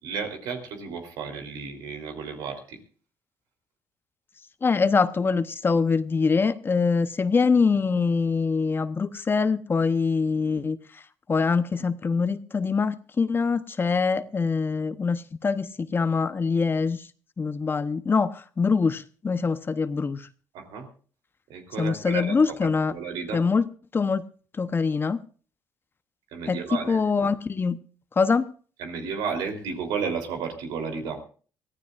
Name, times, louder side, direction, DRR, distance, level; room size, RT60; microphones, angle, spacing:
voice 1, 0.0-2.8 20.5-20.9 21.5-22.3 22.9-23.5 26.3-27.0 28.8-31.2, right 5 dB, 85° right, 4 dB, 3.5 m, -32 dB
voice 2, 4.6-10.8 11.3-17.0 17.4-20.2 21.8-22.9 23.3-23.6 23.9-24.2 24.6-25.2 26.5-27.8 28.2-28.5, left 5 dB, 30° left, 12 dB, 0.9 m, -24 dB
23.5 x 15.0 x 2.5 m, 0.40 s
cardioid pair, 90°, 7 cm